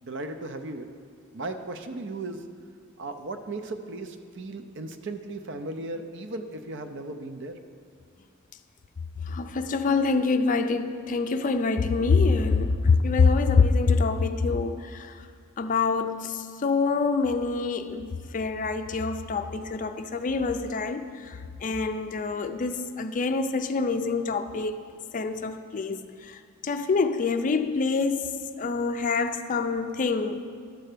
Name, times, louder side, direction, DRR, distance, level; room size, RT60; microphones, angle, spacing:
voice 1, 0.0-0.9 1.3-2.4 3.0-7.6, right 2 dB, 60° right, 0.6 m, -36 dB
voice 2, 9.3-15.1 15.6-24.7 25.1-26.0 26.6-28.3 28.6-30.5, left 4 dB, 40° left, 0.4 m, -25 dB
12.0 x 4.4 x 6.7 m
head